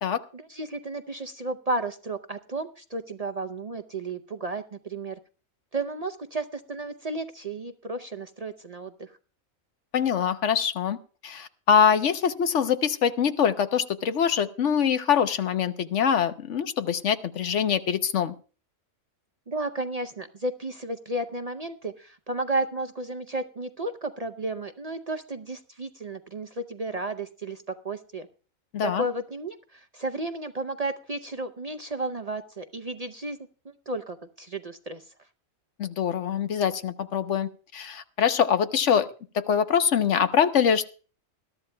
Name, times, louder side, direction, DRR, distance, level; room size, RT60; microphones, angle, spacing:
voice 1, 0.3-5.2 5.7-9.1 19.5-28.3 28.8-33.4 33.9-35.0, right 2 dB, 45° right, 7 dB, 0.5 m, -33 dB
voice 2, 9.9-11.0 11.2-18.3 28.7-29.0 35.8-39.1 39.3-40.9, left 7 dB, 65° left, 10 dB, 1.1 m, -24 dB
21.0 x 13.0 x 2.2 m, 0.37 s
omnidirectional pair, 1.4 m